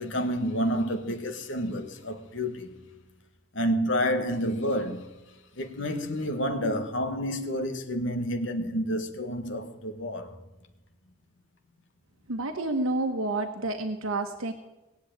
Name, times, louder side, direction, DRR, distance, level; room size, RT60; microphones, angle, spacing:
voice 1, 0.0-2.7 3.5-5.1 5.6-10.3, equal, 65° left, 1.8 m, -29 dB
voice 2, 12.3-14.5, right 2 dB, 90° right, 1.2 m, -29 dB
18.5 x 8.0 x 9.3 m
head